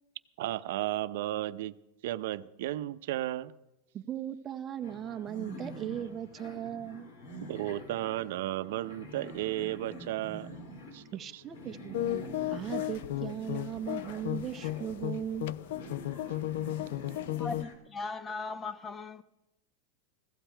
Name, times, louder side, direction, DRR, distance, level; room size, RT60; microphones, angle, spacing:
voice 1, 0.4-1.7 2.0-3.5 7.5-10.5 10.9-11.0 11.3-11.4 16.3-17.4, right 15 dB, 65° right, 0.6 m, -34 dB
voice 2, 3.9-7.1 11.1-12.0 12.5-15.5, right 10 dB, 20° right, 0.7 m, -38 dB
sound 1, 4.8-17.7, equal, 90° left, 3.9 m, -46 dB
sound 2, 11.9-17.6, left 14 dB, 70° left, 0.4 m, -35 dB
voice 3, 17.4-19.2, left 3 dB, 15° left, 0.7 m, -38 dB
16.0 x 14.5 x 4.5 m
supercardioid pair, 165°, 0 cm